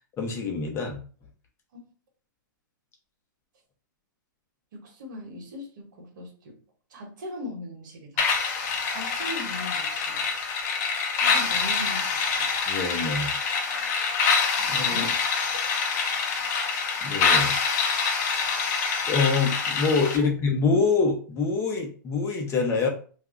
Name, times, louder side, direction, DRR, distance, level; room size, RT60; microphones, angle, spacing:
voice 1, 0.2-1.0 12.7-13.3 14.7-15.1 17.0-17.5 19.1-22.9, left 4 dB, 25° left, 1 dB, 0.9 m, -25 dB
voice 2, 4.8-6.5 6.9-8.2 8.9-10.2 11.2-12.5 14.9-15.1 17.4-17.5 20.2-20.3, left 1 dB, 65° right, 2 dB, 1.2 m, -39 dB
sound 1, 8.2-20.2, left 5 dB, 50° left, 0.8 m, -26 dB
2.6 x 2.3 x 3.7 m, 0.41 s
hypercardioid pair, 130°, 11 cm